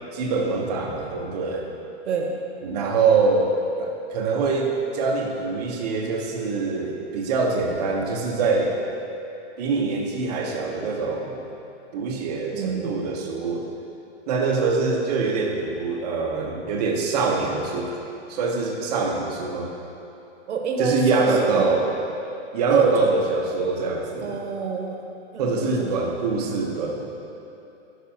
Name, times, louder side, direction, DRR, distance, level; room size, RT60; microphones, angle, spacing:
voice 1, 0.1-1.7 2.6-8.8 9.6-11.4 11.9-13.6 14.3-19.7 20.8-21.9 22.5-24.4 25.4-27.1, right 4 dB, 35° right, 0 dB, 0.9 m, -24 dB
voice 2, 12.5-13.0 20.5-21.7 22.7-22.9 24.2-25.0 25.3-25.9, right 5 dB, 75° right, 2 dB, 1.2 m, -26 dB
11.5 x 6.0 x 2.8 m, 2.8 s
hypercardioid pair, 165°, 35 cm